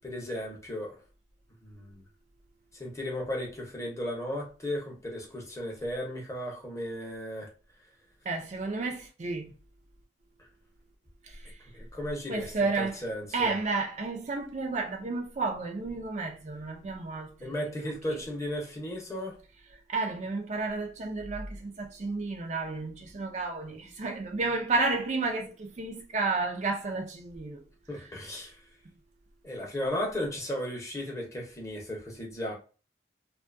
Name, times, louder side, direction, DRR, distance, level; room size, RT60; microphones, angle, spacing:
voice 1, 0.0-1.0 1.6-2.0 2.7-7.5 11.7-13.6 17.4-19.4 27.9-28.6 29.4-32.5, left 1 dB, 15° left, 0.7 m, -35 dB
voice 2, 8.3-9.5 12.3-12.9 13.3-17.7 19.9-27.6, right 3 dB, 40° right, 0.4 m, -31 dB
2.6 x 2.2 x 2.5 m
head